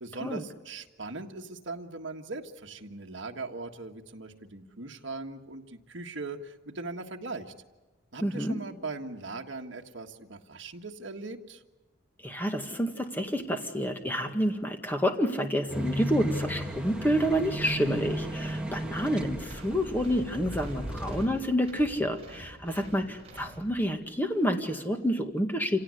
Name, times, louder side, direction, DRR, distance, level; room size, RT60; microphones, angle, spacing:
voice 1, 0.0-7.5 8.1-11.6, right 3 dB, 65° right, 2 dB, 1.7 m, -40 dB
voice 2, 8.2-8.6 12.2-25.8, equal, 10° left, 5 dB, 1.9 m, -29 dB
sound 1, 15.7-21.2, equal, 5° right, 1.9 m, -35 dB
sound 2, 19.4-24.1, right 1 dB, 30° right, 4.9 m, -49 dB
27.5 x 17.5 x 9.8 m, 1.2 s
head